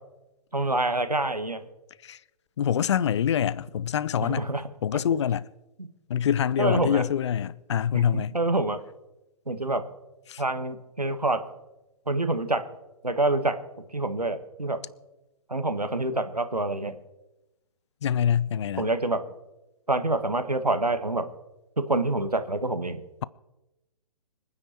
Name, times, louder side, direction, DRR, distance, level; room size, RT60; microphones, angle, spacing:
voice 1, 0.5-1.6 4.2-4.6 5.8-5.9 6.6-7.0 7.9-8.8 9.5-9.8 10.4-11.4 12.1-12.6 13.0-13.5 13.9-14.8 15.5-17.0 18.8-19.2 19.9-21.3 21.8-23.0, right 2 dB, 90° right, 1.5 m, -26 dB
voice 2, 2.6-4.5 4.8-5.4 6.1-8.3 10.3-10.4 18.0-18.9, left 9 dB, 50° left, 0.5 m, -25 dB
25.5 x 9.7 x 4.4 m
figure-of-eight pair, 125°, 19 cm